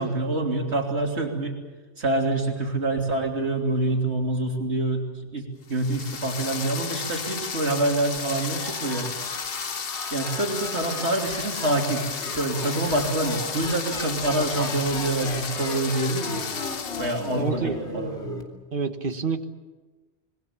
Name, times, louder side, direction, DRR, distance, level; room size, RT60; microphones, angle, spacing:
voice 1, 0.0-1.6 2.0-5.1 5.3-9.1 10.1-12.1 12.4-16.6 17.0-18.2, right 2 dB, 75° right, 1 dB, 3.5 m, -26 dB
sound 1, 5.7-17.4, left 6 dB, 60° left, 1.2 m, -33 dB
sound 2, 8.4-18.4, left 2 dB, 75° left, 3.1 m, -36 dB
voice 2, 17.3-17.8 18.7-19.4, right 4 dB, 50° right, 7 dB, 1.6 m, -27 dB
26.0 x 21.5 x 7.3 m, 1.3 s
omnidirectional pair, 1.2 m